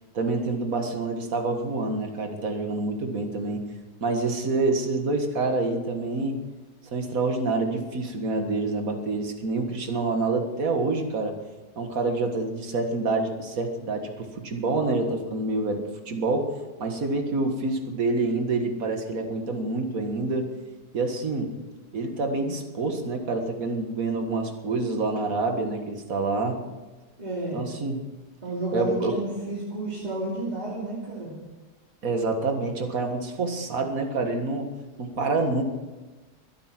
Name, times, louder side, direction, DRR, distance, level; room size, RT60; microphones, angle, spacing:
voice 1, 0.1-3.7 4.0-6.4 6.9-11.4 11.8-16.5 16.8-20.5 20.9-21.5 21.9-26.6 27.5-28.0 28.7-29.2 32.0-34.7 35.0-35.6, right 3 dB, 60° right, 4 dB, 2.1 m, -27 dB
voice 2, 27.2-27.6 28.4-31.3, right 2 dB, 25° right, -5 dB, 2.9 m, -31 dB
23.5 x 8.8 x 6.0 m, 1.2 s
omnidirectional pair, 1.7 m